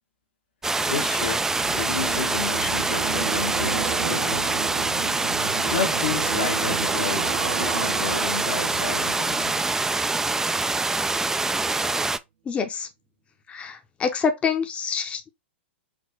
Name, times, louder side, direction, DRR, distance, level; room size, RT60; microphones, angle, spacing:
sound 1, 0.6-12.2, right 3 dB, 5° right, 0.3 m, -25 dB
voice 1, 0.9-1.4 1.7-4.5 5.7-9.8, left 6 dB, 70° left, 1.3 m, -31 dB
sound 2, 1.1-10.5 10.8-11.1, right 9 dB, 65° right, 0.8 m, -34 dB
voice 2, 12.5-12.9 13.5-15.3, left 6 dB, 20° left, 0.7 m, -26 dB
5.1 x 3.1 x 3.3 m
figure-of-eight pair, 100°, 6 cm